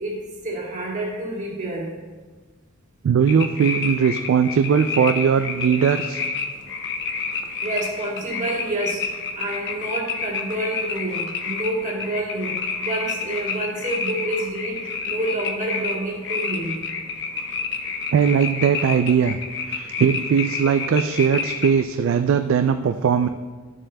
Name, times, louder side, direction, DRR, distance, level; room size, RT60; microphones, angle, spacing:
voice 1, 0.0-1.9 7.6-16.8, right 1 dB, 40° right, -2 dB, 1.5 m, -28 dB
voice 2, 3.0-6.2 18.1-19.4 19.7-23.3, right 7 dB, 70° right, 8 dB, 0.3 m, -19 dB
sound 1, 3.3-21.8, left 5 dB, 60° left, 0.7 m, -29 dB
11.0 x 7.4 x 2.2 m, 1.4 s
head